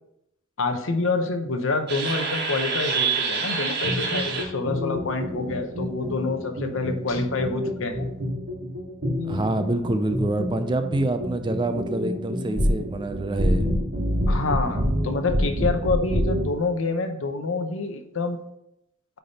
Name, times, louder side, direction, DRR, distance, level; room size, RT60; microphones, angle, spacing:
voice 1, 0.6-8.1 14.3-18.4, left 3 dB, 70° left, 7 dB, 0.8 m, -27 dB
sound 1, 1.9-16.6, right 1 dB, 50° right, 1.3 m, -27 dB
voice 2, 9.3-13.7, right 2 dB, 20° right, 9 dB, 0.4 m, -26 dB
9.2 x 3.5 x 4.1 m, 0.81 s
head